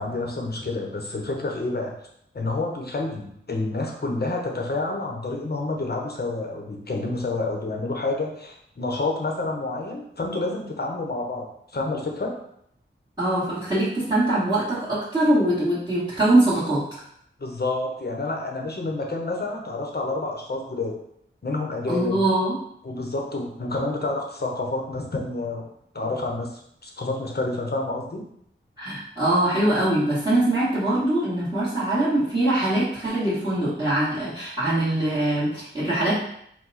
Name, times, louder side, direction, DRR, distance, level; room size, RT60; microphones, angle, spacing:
voice 1, 0.0-1.9 2.3-12.3 17.4-21.0 21.4-22.2 22.8-25.7 25.9-28.2, left 2 dB, 50° left, 1 dB, 0.9 m, -29 dB
voice 2, 13.2-16.9 21.9-22.6 28.8-36.2, right 1 dB, 20° right, -13 dB, 1.6 m, -22 dB
4.7 x 2.2 x 4.0 m, 0.72 s
wide cardioid pair, 80°, 21 cm